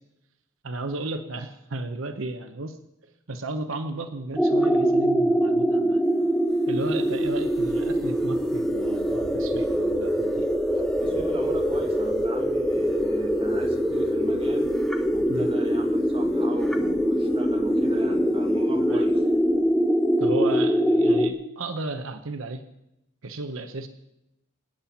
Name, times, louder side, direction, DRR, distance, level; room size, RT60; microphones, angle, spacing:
voice 1, 0.6-6.0 6.7-10.5 15.3-15.5 18.8-19.1 20.2-22.6 23.2-23.9, right 2 dB, 75° right, 8 dB, 1.0 m, -34 dB
sound 1, 4.4-21.3, equal, 5° left, 0.9 m, -23 dB
voice 2, 10.7-14.7 15.1-19.2, right 1 dB, 25° right, 1 dB, 2.3 m, -38 dB
26.0 x 8.9 x 5.9 m, 0.89 s
head